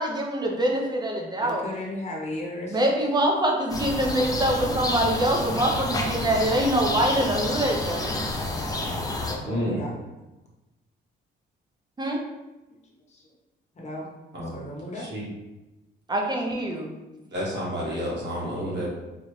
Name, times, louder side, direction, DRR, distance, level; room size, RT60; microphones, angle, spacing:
voice 1, 0.0-1.6 2.7-8.2 12.0-12.2 16.1-16.9, right 1 dB, 20° right, 1 dB, 0.8 m, -24 dB
voice 2, 1.4-2.8 9.2-9.9 13.1-13.3 13.7-14.1 14.4-15.1 18.5-18.9, left 1 dB, 35° left, -2 dB, 1.1 m, -36 dB
sound 1, 3.7-9.3, left 2 dB, 20° left, 0.6 m, -29 dB
voice 3, 9.4-9.8 14.3-14.6 15.0-15.3 17.3-18.9, equal, 60° right, -4 dB, 1.5 m, -30 dB
4.1 x 2.3 x 3.2 m, 1.0 s
cardioid pair, 90°, 20 cm